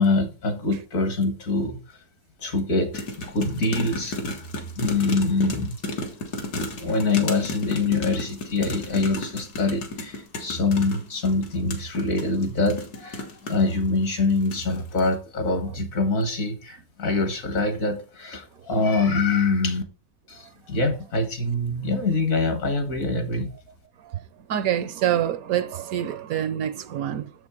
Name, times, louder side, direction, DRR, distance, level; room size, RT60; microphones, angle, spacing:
voice 1, 0.0-1.8 2.4-4.5 4.8-5.8 6.8-19.8 20.3-23.5, left 3 dB, 60° left, 1.9 m, -24 dB
sound 1, 2.9-13.7 14.3-14.7 15.0-15.1, left 2 dB, 80° left, 2.1 m, -33 dB
voice 2, 24.5-27.3, right 11 dB, 70° right, 1.0 m, -26 dB
7.2 x 6.2 x 4.5 m
omnidirectional pair, 1.7 m